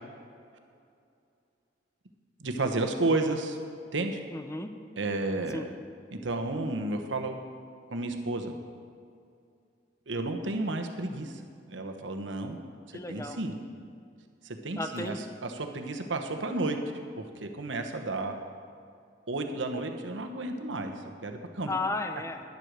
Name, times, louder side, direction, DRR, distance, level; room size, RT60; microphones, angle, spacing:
voice 1, 2.4-3.6 3.9-4.2 5.0-5.7 6.1-7.4 7.9-8.5 10.1-11.4 11.7-12.6 13.1-13.5 14.4-16.8 17.2-18.3 19.3-20.9 21.2-21.7, right 2 dB, 80° right, 5 dB, 1.0 m, -32 dB
voice 2, 4.3-4.7 5.5-5.7 12.9-13.4 14.8-15.2 21.7-22.4, left 2 dB, 15° left, 8 dB, 0.6 m, -33 dB
10.5 x 7.9 x 6.7 m, 2.4 s
head